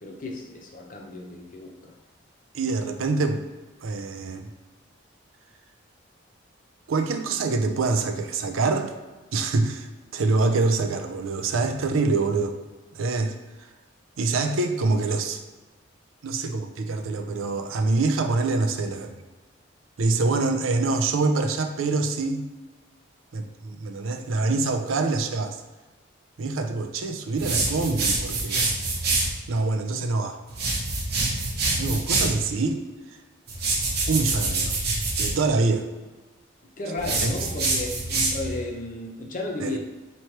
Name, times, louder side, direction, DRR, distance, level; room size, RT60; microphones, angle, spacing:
voice 1, 0.0-1.9 36.8-39.8, left 2 dB, 40° left, 0 dB, 0.7 m, -34 dB
voice 2, 2.5-3.4 3.8-4.5 6.9-8.9 9.3-12.5 12.9-13.3 14.2-15.4 16.2-19.2 20.0-22.4 23.3-25.6 26.4-28.7 29.5-30.4 31.8-32.8 34.1-34.8 35.2-35.9 37.2-37.3 39.6-39.8, right 3 dB, 90° right, 5 dB, 0.5 m, -25 dB
sound 1, 27.4-29.3 30.5-32.4 33.5-35.4 37.0-38.6, right 3 dB, 50° right, 0.9 m, -26 dB
3.1 x 2.9 x 4.4 m, 1.2 s
head